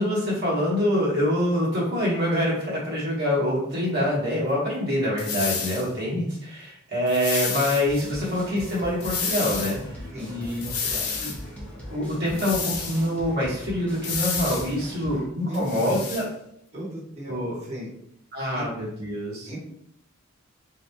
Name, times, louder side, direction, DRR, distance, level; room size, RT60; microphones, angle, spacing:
voice 1, 0.0-9.9 10.3-10.6 11.2-11.3 11.9-16.3 17.3-17.5 18.3-19.5, left 1 dB, 50° right, -7 dB, 1.3 m, -25 dB
sound 1, 5.2-5.9 7.1-7.8 9.0-9.8 10.6-11.4 12.4-13.1 14.0-14.7 15.5-16.2, left 5 dB, 85° left, 0.7 m, -30 dB
sound 2, 7.9-15.3, equal, 5° left, 0.7 m, -40 dB
voice 2, 10.1-11.1 14.8-15.7 16.7-17.9 18.5-18.7 19.5-19.6, equal, 30° right, -6 dB, 1.3 m, -37 dB
4.0 x 2.9 x 2.2 m, 0.71 s
head